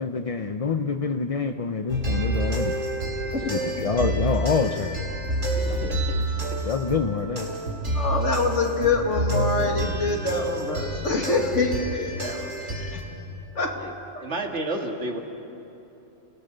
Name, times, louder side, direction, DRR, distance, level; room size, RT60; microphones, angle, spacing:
voice 1, 0.0-2.8 3.5-5.0 6.6-7.5, left 5 dB, 35° left, 7 dB, 0.6 m, -26 dB
sound 1, 1.9-13.0, right 1 dB, 85° right, 4.0 m, -28 dB
voice 2, 3.2-3.6 5.5-6.1 6.5-6.6 13.8-13.9 14.2-15.2, right 2 dB, 65° right, 2 dB, 2.2 m, -32 dB
voice 3, 7.9-13.0 13.6-13.8 14.1-14.3, left 3 dB, 65° left, 2 dB, 2.6 m, -26 dB
29.5 x 18.0 x 6.7 m, 2.9 s
omnidirectional pair, 1.3 m